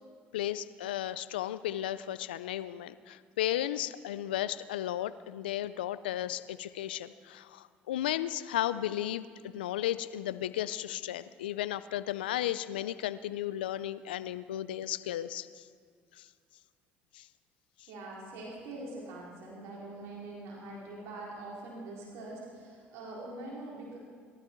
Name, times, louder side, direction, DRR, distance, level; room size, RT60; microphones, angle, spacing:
voice 1, 0.3-15.7 16.2-16.3 17.1-17.3, left 12 dB, 90° left, 14 dB, 0.5 m, -34 dB
voice 2, 17.9-24.0, right 2 dB, 70° right, -4 dB, 4.1 m, -43 dB
21.0 x 13.0 x 4.6 m, 2.1 s
hypercardioid pair, 65°, 5 cm